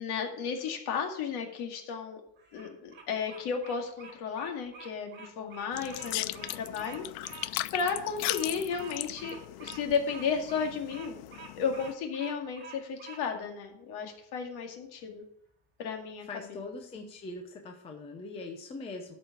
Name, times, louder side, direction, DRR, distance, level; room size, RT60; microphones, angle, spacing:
voice 1, 0.0-2.2 2.5-7.5 7.7-11.2 11.6-15.2 15.8-16.6, left 6 dB, 50° left, 3 dB, 2.1 m, -34 dB
Bird vocalization bird call bird song, 2.4-13.2, right 5 dB, 20° right, 1.9 m, -48 dB
sound 1, 5.7-11.9, left 18 dB, 70° left, 0.5 m, -38 dB
voice 2, 16.3-19.1, left 3 dB, 10° left, 3 dB, 0.6 m, -41 dB
12.5 x 5.0 x 6.0 m, 0.69 s
cardioid pair, 170°, 49 cm